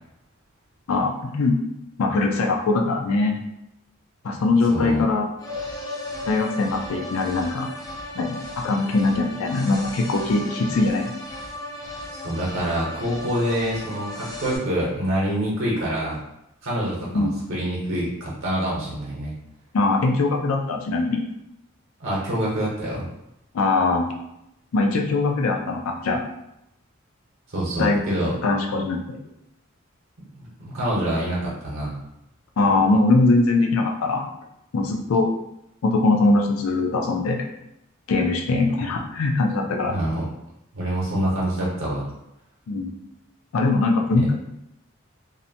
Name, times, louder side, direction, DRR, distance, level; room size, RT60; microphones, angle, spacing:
voice 1, 0.9-1.5 2.0-3.4 4.2-5.3 6.2-7.7 8.1-8.4 8.6-11.1 17.1-17.3 19.7-21.2 23.5-24.1 24.7-26.2 27.8-28.0 28.4-29.2 32.6-34.3 34.7-35.3 35.8-37.5 38.1-40.0 42.7-42.9 43.5-44.3, left 3 dB, 90° left, 2 dB, 0.4 m, -21 dB
voice 2, 4.7-5.0 12.2-16.2 16.6-19.3 22.0-23.0 27.5-28.3 30.4-32.0 39.9-40.2 40.7-42.1 44.2-44.3, right 1 dB, 65° right, -6 dB, 0.8 m, -26 dB
sound 1, 5.4-14.6, left 1 dB, 15° left, 0.4 m, -35 dB
2.7 x 2.1 x 2.7 m, 0.82 s
head